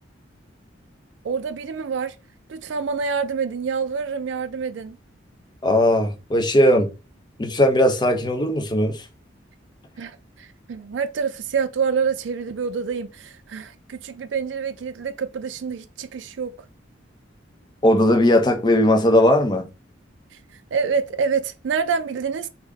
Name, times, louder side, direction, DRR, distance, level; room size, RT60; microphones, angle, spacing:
voice 1, 1.2-2.2 2.5-5.0 10.0-16.5 20.7-22.5, right 5 dB, 70° right, 0.4 m, -27 dB
voice 2, 5.6-6.9 7.4-9.0 17.8-19.7, left 1 dB, 20° left, 0.5 m, -18 dB
3.5 x 2.1 x 3.5 m
head